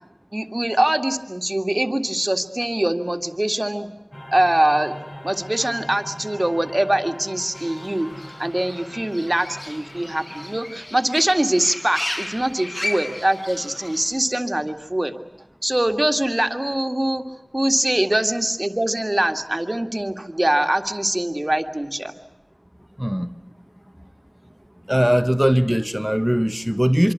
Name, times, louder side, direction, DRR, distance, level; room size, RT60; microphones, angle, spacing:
voice 1, 0.3-3.9 4.3-4.9 5.2-8.1 8.4-15.1 15.6-17.2 17.5-22.1, right 1 dB, 30° right, 7 dB, 1.9 m, -23 dB
sound 1, 4.1-10.7, left 1 dB, 30° left, 3.2 m, -41 dB
Fowl / Bird, 7.5-14.0, left 1 dB, 50° left, 6.9 m, -34 dB
voice 2, 23.0-23.3 24.9-27.1, equal, 10° right, 10 dB, 1.2 m, -20 dB
25.0 x 24.5 x 8.5 m, 0.97 s
wide cardioid pair, 45°, 0 cm